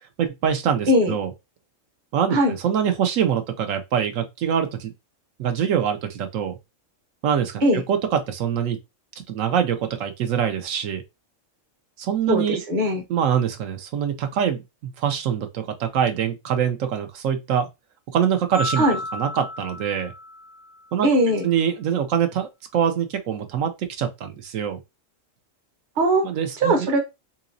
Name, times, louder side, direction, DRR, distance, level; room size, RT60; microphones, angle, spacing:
voice 1, 0.2-1.3 2.1-4.9 5.4-6.5 7.2-7.6 7.9-8.8 9.3-11.0 12.0-12.6 13.1-17.7 18.1-18.8 19.1-20.1 20.9-21.1 21.4-24.8 26.2-26.9, right 8 dB, 85° right, 1.0 m, -24 dB
voice 2, 12.3-13.0 18.8-19.0 21.0-21.5 26.0-26.3 26.6-27.0, right 1 dB, 40° right, 1.0 m, -20 dB
sound 1, 18.5-20.9, left 2 dB, 20° left, 0.4 m, -33 dB
3.9 x 2.9 x 2.5 m
omnidirectional pair, 1.4 m